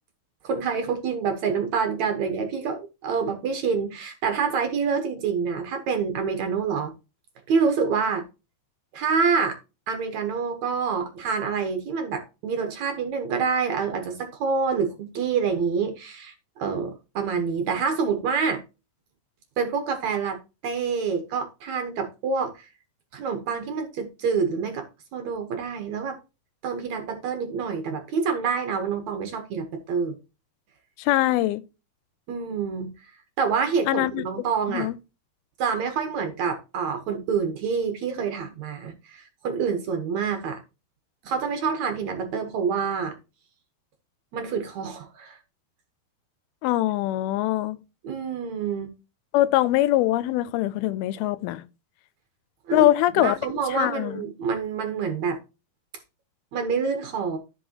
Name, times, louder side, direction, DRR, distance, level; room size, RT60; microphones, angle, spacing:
voice 1, 0.4-6.9 7.5-8.2 8.9-9.6 9.9-18.6 19.6-22.7 23.1-24.9 25.1-26.2 26.6-30.2 32.3-33.1 33.4-34.9 35.6-40.6 41.2-43.2 44.3-45.4 48.0-49.0 52.7-52.9 53.1-55.4 56.5-57.4, right 5 dB, 65° right, 2.0 m, -27 dB
voice 2, 31.0-31.6 33.9-34.2 34.7-35.0 46.6-47.8 49.3-51.7 52.7-53.4 53.7-54.2, left 15 dB, 90° left, 2.5 m, -23 dB
14.0 x 5.4 x 2.9 m
omnidirectional pair, 4.3 m